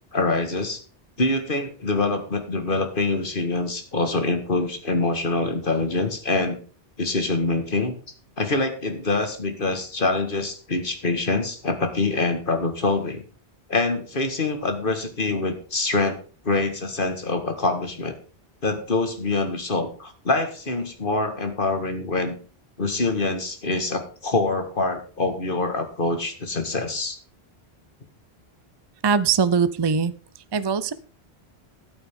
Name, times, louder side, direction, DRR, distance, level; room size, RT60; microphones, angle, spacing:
voice 1, 0.1-0.8 1.2-6.6 7.0-7.9 8.4-13.2 13.7-16.2 16.4-18.1 18.6-22.4 22.8-27.2, left 3 dB, 50° left, 7 dB, 1.9 m, -25 dB
voice 2, 29.0-30.1 30.5-30.9, right 6 dB, 30° right, 15 dB, 0.5 m, -21 dB
12.5 x 9.0 x 3.7 m, 0.41 s
omnidirectional pair, 1.1 m